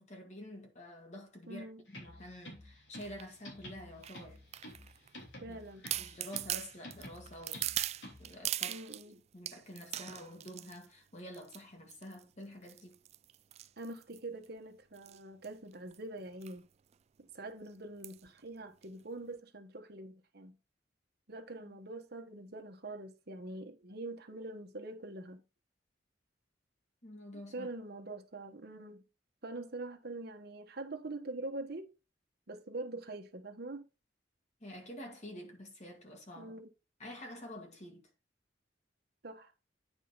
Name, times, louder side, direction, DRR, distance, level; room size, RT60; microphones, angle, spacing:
voice 1, 0.0-1.7 2.0-4.4 5.4-5.6 6.0-7.6 8.2-8.8 9.3-13.0 21.6-21.8 27.0-27.7 34.6-36.5 37.0-38.1, left 1 dB, 40° left, 2.0 m, -48 dB
voice 2, 1.5-1.8 5.4-5.9 8.7-9.2 13.8-16.7 17.2-20.5 21.3-25.4 27.3-29.0 29.4-31.9 32.5-33.8 36.4-36.7 39.2-39.5, right 2 dB, 60° right, 1.3 m, -44 dB
sound 1, 1.9-8.4, left 1 dB, 85° left, 3.2 m, -51 dB
sound 2, 3.0-3.3 4.0-5.1 5.5-5.6 5.9-9.1 9.5-10.9 11.3-11.6 11.9-12.2 12.7-14.5 15.0-15.2 15.4-15.5 15.7-16.0 16.4-16.6 16.9-17.0 18.0-18.3 18.8-18.9, right 13 dB, 35° right, 0.3 m, -40 dB
9.3 x 5.0 x 4.0 m
head